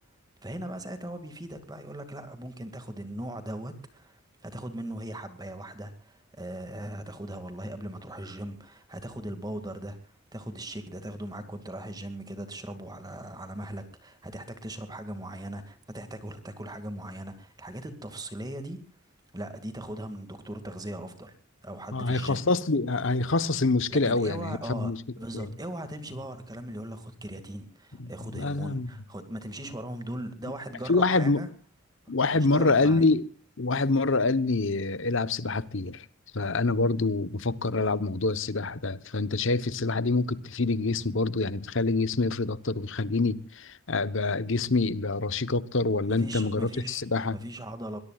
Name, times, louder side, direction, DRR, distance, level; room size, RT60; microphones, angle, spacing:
voice 1, 0.4-18.8 19.3-21.3 21.6-22.5 23.9-31.5 32.3-33.1 46.1-47.0 47.3-48.0, right 1 dB, 20° right, 2.2 m, -39 dB
voice 2, 21.9-25.0 25.3-25.5 28.0-28.9 30.9-31.4 32.1-33.2 33.6-36.1 36.3-47.4, left 3 dB, 60° left, 1.1 m, -26 dB
22.0 x 22.0 x 2.5 m
head